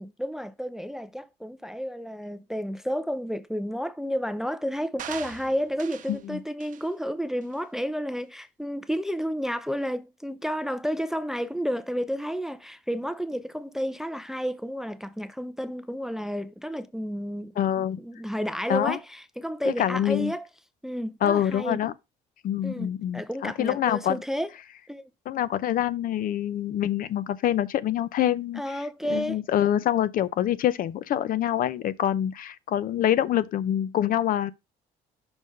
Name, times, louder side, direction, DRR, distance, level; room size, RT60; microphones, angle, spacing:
voice 1, 0.0-17.5 17.8-20.5 20.8-21.8 22.6-24.5 24.9-25.1 28.6-29.4, equal, 5° right, 0.5 m, -31 dB
sound 1, 5.0-6.2 6.6-6.9 7.4-7.6, right 10 dB, 50° right, 0.8 m, -41 dB
voice 2, 6.1-6.4 17.6-18.0 18.7-19.0 19.8-20.3 21.2-21.9 22.4-24.2 25.3-34.5, left 11 dB, 55° left, 0.6 m, -26 dB
6.1 x 3.7 x 5.2 m
cardioid pair, 110°, 17 cm